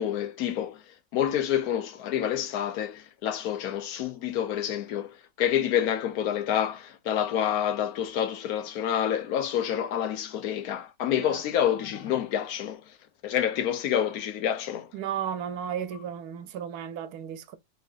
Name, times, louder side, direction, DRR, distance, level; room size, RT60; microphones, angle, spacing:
voice 1, 0.0-12.8 13.2-14.9, left 10 dB, 75° left, 1.1 m, -28 dB
voice 2, 14.9-17.6, right 9 dB, 85° right, 1.2 m, -34 dB
4.1 x 3.3 x 2.4 m
omnidirectional pair, 1.6 m